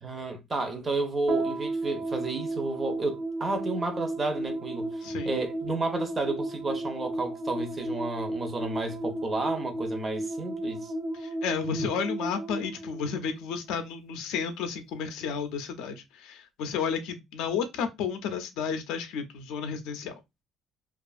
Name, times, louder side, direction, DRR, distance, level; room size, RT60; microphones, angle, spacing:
voice 1, 0.0-5.0 5.2-10.9, right 2 dB, 25° right, 0.6 m, -31 dB
sound 1, 1.3-13.8, right 2 dB, 50° right, 1.1 m, -34 dB
voice 2, 5.0-5.3 11.1-20.1, left 6 dB, 85° left, 0.4 m, -32 dB
2.4 x 2.4 x 2.3 m
cardioid pair, 140°, 0 cm